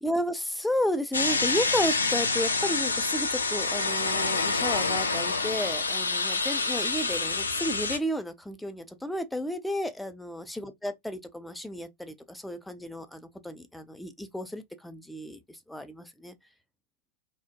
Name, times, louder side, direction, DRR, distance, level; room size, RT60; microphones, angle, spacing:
voice 1, 0.0-16.3, equal, 5° left, 0.4 m, -33 dB
sound 1, 1.1-8.0, left 3 dB, 75° left, 0.3 m, -27 dB
2.5 x 2.0 x 2.4 m
figure-of-eight pair, 90°, 0 cm